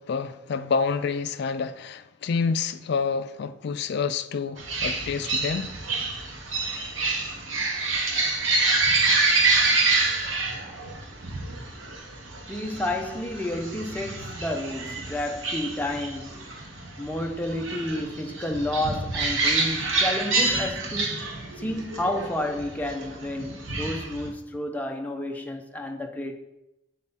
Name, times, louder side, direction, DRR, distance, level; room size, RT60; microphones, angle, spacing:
voice 1, 0.0-5.7, left 5 dB, 60° left, 0.4 m, -28 dB
sound 1, 4.6-24.3, right 3 dB, 85° right, 1.0 m, -27 dB
voice 2, 12.5-16.4 16.7-21.3 21.6-26.4, left 1 dB, 10° left, 0.5 m, -31 dB
7.6 x 3.6 x 4.0 m
head